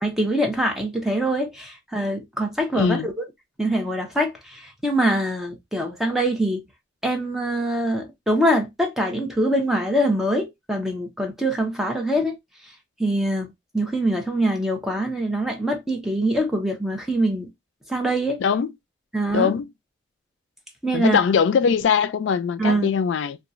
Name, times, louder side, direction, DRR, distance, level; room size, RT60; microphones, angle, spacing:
voice 1, 0.0-3.1 3.6-6.6 7.0-12.4 13.0-17.5 17.9-18.4 19.1-19.5 20.8-21.2 22.6-22.9, right 1 dB, ahead, 0.6 m, -24 dB
voice 2, 2.7-3.1 18.4-18.7 19.3-19.7 20.9-23.4, left 6 dB, 85° left, 0.3 m, -21 dB
2.9 x 2.2 x 2.4 m
head